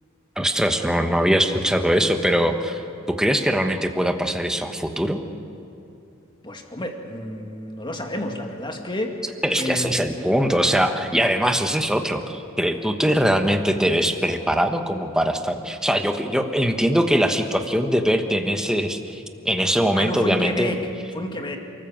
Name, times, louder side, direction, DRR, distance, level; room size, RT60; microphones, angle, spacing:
voice 1, 0.4-2.8 3.1-5.2 9.4-20.8, equal, 5° right, 5 dB, 1.1 m, -22 dB
voice 2, 6.4-9.1 9.6-10.1 19.9-20.8 21.1-21.6, left 1 dB, 25° left, 3 dB, 2.1 m, -30 dB
29.0 x 14.5 x 7.4 m, 2.7 s
head